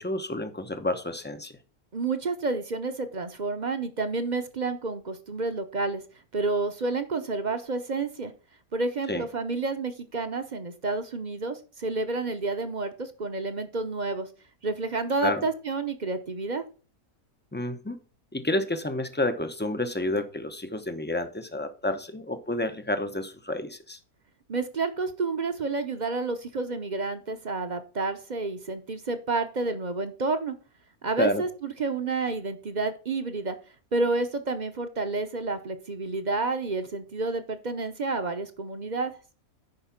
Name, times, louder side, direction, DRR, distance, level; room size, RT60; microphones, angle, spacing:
voice 1, 0.0-1.6 9.1-9.2 15.2-15.4 17.5-18.0 18.3-24.0 31.2-31.4, left 1 dB, 10° left, 9 dB, 0.5 m, -29 dB
voice 2, 1.9-6.0 6.3-8.3 8.7-14.3 14.6-16.6 24.5-30.5 31.0-33.6 33.9-39.1, right 3 dB, 40° right, 9 dB, 0.8 m, -30 dB
10.5 x 4.6 x 5.8 m, 0.37 s
omnidirectional pair, 1.5 m